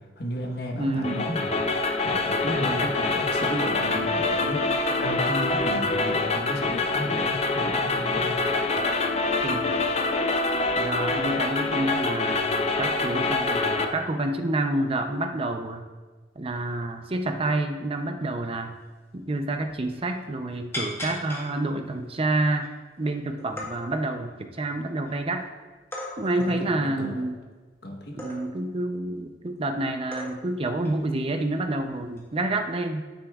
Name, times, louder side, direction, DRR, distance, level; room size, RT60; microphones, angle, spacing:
voice 1, 0.2-1.5 2.0-4.6 5.0-8.4 26.4-27.2 27.8-28.2, equal, 60° left, 2 dB, 1.3 m, -33 dB
voice 2, 0.8-1.3 2.6-2.9 9.4-9.8 10.8-15.9 16.4-18.7 19.1-22.7 23.0-25.4 26.2-27.4 28.1-33.0, right 2 dB, 30° right, 6 dB, 0.6 m, -28 dB
sound 1, 1.0-13.9, left 3 dB, 35° left, 0.6 m, -25 dB
sound 2, 18.8-18.9 19.2-19.3 19.6-20.2 20.7-21.5 22.1-22.2 22.5-23.1 23.4-23.7 24.3-25.1 25.9-26.6 28.2-28.6 29.6-29.7 30.1-30.6 30.8-31.0 32.1-32.4, left 1 dB, 15° left, 1.4 m, -37 dB
9.8 x 8.8 x 2.4 m, 1.3 s
head